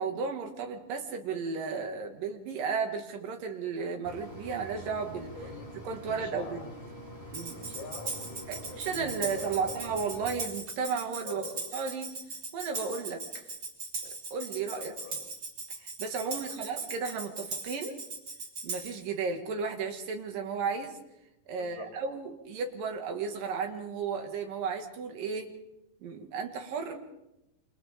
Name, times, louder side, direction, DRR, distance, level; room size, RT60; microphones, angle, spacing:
voice 1, 0.0-5.3 5.8-6.7 7.3-7.6 8.5-11.5 11.7-12.1 12.5-13.5 14.0-14.9 15.8-18.0 18.6-20.9 21.5-25.5 26.0-27.0, right 5 dB, 70° right, 4 dB, 3.6 m, -34 dB
Mechanisms, 4.0-10.3, right 1 dB, 10° right, 4.4 m, -45 dB
voice 2, 5.3-5.7 6.0-6.6 7.5-9.8 11.2-11.6 14.6-15.2 16.2-16.7 21.6-22.2, left 4 dB, 75° left, -1 dB, 8.4 m, -45 dB
Tambourine, 7.3-19.0, right 3 dB, 35° right, 3.6 m, -39 dB
27.5 x 27.0 x 3.7 m, 0.91 s
omnidirectional pair, 4.2 m